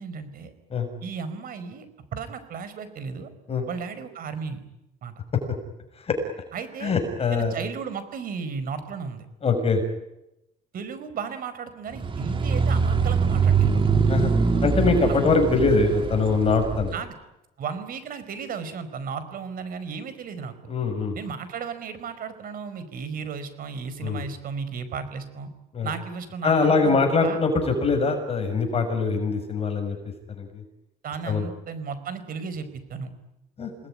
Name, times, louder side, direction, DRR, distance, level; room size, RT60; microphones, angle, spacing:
voice 1, 0.0-0.5 1.0-1.9 2.1-3.3 3.7-4.6 5.0-5.1 6.5-6.9 7.3-9.2 10.7-14.0 15.0-15.3 16.9-17.1 17.6-20.7 21.1-25.5 25.8-27.0 27.2-27.4 31.0-33.1, right 5 dB, 60° right, 12 dB, 5.0 m, -34 dB
voice 2, 6.8-7.5 9.4-9.8 14.1-14.3 14.6-16.9 20.7-21.2 24.0-24.2 25.7-25.9 26.4-30.0 30.4-30.5 31.3-31.4 33.6-33.7, left 4 dB, 35° left, 4 dB, 6.4 m, -22 dB
sound 1, 11.9-16.9, right 5 dB, 30° right, 2.5 m, -23 dB
29.0 x 20.0 x 9.8 m, 0.88 s
cardioid pair, 110°, 17 cm